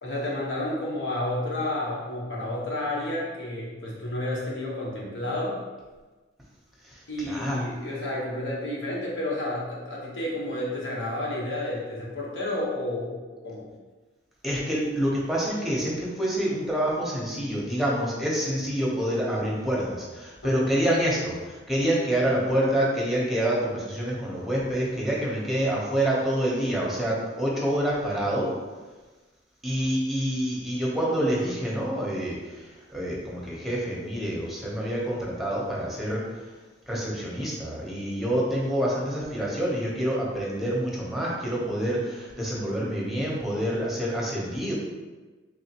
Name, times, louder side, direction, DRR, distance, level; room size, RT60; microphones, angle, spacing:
voice 1, 0.0-5.6 7.1-13.2 13.4-13.7 20.4-20.6, left 1 dB, 85° left, -4 dB, 1.1 m, -31 dB
voice 2, 6.8-7.6 14.4-28.5 29.6-36.2 36.9-44.7, right 1 dB, ahead, -5 dB, 0.8 m, -27 dB
3.6 x 3.4 x 2.9 m, 1.3 s
head